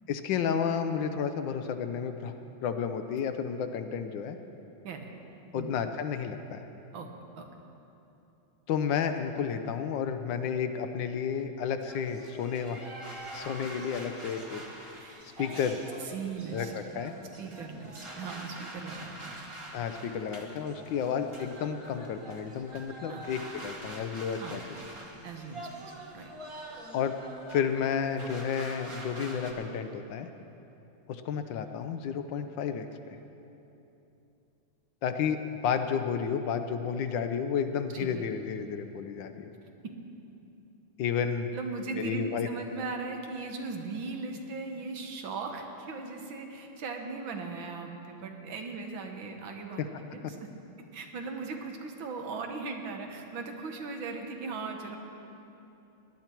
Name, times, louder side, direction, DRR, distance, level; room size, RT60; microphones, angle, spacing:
voice 1, 0.1-2.3 2.6-4.4 5.5-6.6 8.7-12.9 13.3-14.6 15.4-15.8 16.5-17.1 19.7-24.6 26.9-27.1 27.5-30.3 31.1-33.2 35.0-39.5 41.0-41.5 41.9-42.5, left 7 dB, 75° left, 8 dB, 1.3 m, -31 dB
sound 1, 11.8-29.5, right 1 dB, 20° right, 1.2 m, -45 dB
voice 2, 16.0-16.7 17.4-19.4 23.1-23.3 24.4-24.8 25.2-26.3 37.9-38.3 41.5-49.8 50.1-50.5 50.9-55.0, right 4 dB, 75° right, 3 dB, 1.9 m, -38 dB
18.5 x 11.0 x 4.5 m, 2.9 s
omnidirectional pair, 2.2 m